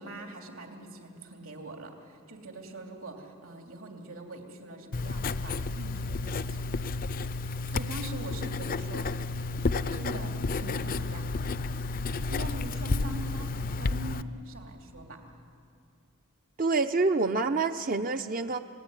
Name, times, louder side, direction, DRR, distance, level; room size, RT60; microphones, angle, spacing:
voice 1, 0.0-6.7 7.7-11.5 12.3-15.2, right 1 dB, 70° right, 2 dB, 3.2 m, -43 dB
Writing, 4.9-14.2, left 3 dB, 40° left, 0.5 m, -31 dB
voice 2, 16.6-18.6, right 3 dB, 40° right, 7 dB, 0.7 m, -27 dB
27.0 x 18.5 x 9.8 m, 2.5 s
head